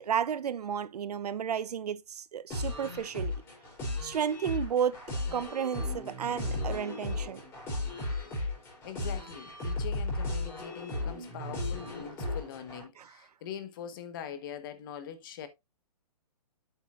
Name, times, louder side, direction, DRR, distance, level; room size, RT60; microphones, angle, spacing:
voice 1, 0.0-3.4 4.0-5.0 5.3-7.4 13.0-13.3, right 8 dB, 75° right, 0.7 m, -32 dB
sound 1, 2.5-12.8, left 2 dB, 15° left, 5.3 m, -35 dB
voice 2, 8.8-15.5, left 9 dB, 35° left, 1.2 m, -43 dB
8.1 x 8.0 x 2.5 m
hypercardioid pair, 160°, 20 cm